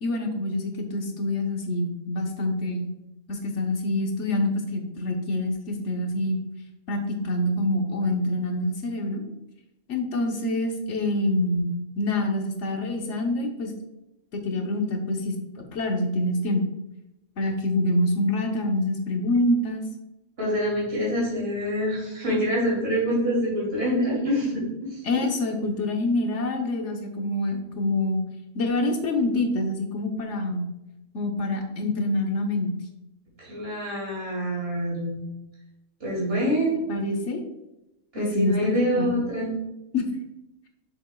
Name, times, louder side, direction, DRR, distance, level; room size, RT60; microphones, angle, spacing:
voice 1, 0.0-2.9 3.3-6.4 6.9-9.2 9.9-13.7 14.3-15.4 15.7-16.7 17.4-19.8 25.0-28.2 28.5-30.7 31.1-32.7 36.9-37.4 38.2-39.1 39.9-40.1, left 1 dB, 65° left, 3 dB, 1.3 m, -26 dB
voice 2, 20.4-25.0 33.4-35.2 36.0-36.8 38.1-39.5, equal, 50° right, -6 dB, 3.0 m, -26 dB
7.3 x 6.6 x 2.3 m, 0.94 s
omnidirectional pair, 1.3 m